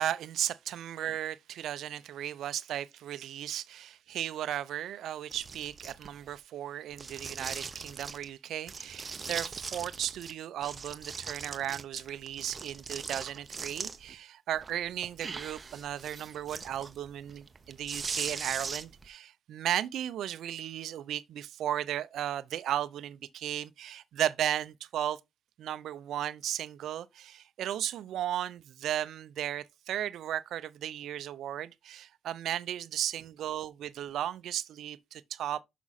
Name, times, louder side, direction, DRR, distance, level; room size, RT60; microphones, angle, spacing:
voice 1, 0.0-25.2 25.6-35.6, right 11 dB, 75° right, 0.6 m, -35 dB
sound 1, 5.3-6.3 6.9-8.3 8.7-10.3 10.6-14.2 14.6-19.1, right 4 dB, 35° right, 0.9 m, -40 dB
6.1 x 6.0 x 4.1 m
cardioid pair, 90°, 0 cm